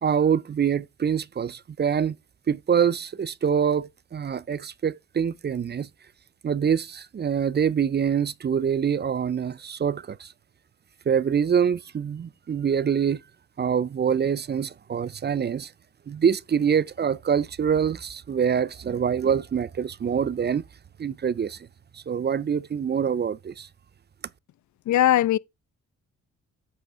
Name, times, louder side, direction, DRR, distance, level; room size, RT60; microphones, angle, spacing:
voice 1, 0.0-2.2 2.5-5.9 6.4-10.3 11.1-13.2 13.6-15.7 16.1-20.6 21.0-21.6 21.9-23.7, right 7 dB, 35° right, 0.5 m, -25 dB
voice 2, 24.9-25.4, left 13 dB, 65° left, 0.5 m, -19 dB
8.6 x 3.2 x 6.1 m
supercardioid pair, 60°, 31 cm